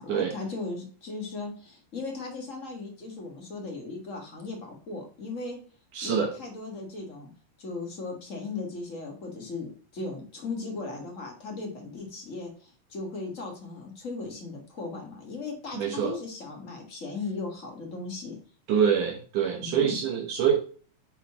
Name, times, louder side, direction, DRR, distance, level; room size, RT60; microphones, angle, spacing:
voice 1, 0.0-5.6 6.0-7.3 7.6-18.4 19.6-20.0, left 3 dB, 40° left, 1 dB, 1.0 m, -37 dB
voice 2, 5.9-6.3 15.7-16.2 18.7-20.7, right 8 dB, 70° right, 0 dB, 2.5 m, -25 dB
7.1 x 3.8 x 4.7 m, 0.41 s
omnidirectional pair, 3.9 m